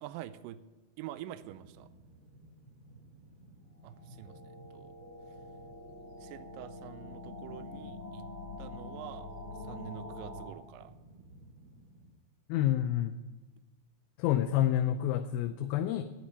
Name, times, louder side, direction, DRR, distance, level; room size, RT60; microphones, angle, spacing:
voice 1, 0.0-0.6 1.0-1.9 3.8-4.9 6.2-8.3 8.6-9.3 9.6-11.0, right 13 dB, 80° right, 12 dB, 2.2 m, -46 dB
sound 1, 1.4-12.1, right 1 dB, 40° right, 3.0 m, -56 dB
sound 2, 3.8-10.5, left 2 dB, 10° left, 4.9 m, -45 dB
voice 2, 12.5-13.2 14.2-16.0, left 11 dB, 85° left, 7 dB, 2.5 m, -28 dB
10.0 x 9.4 x 9.9 m, 1.2 s
omnidirectional pair, 4.2 m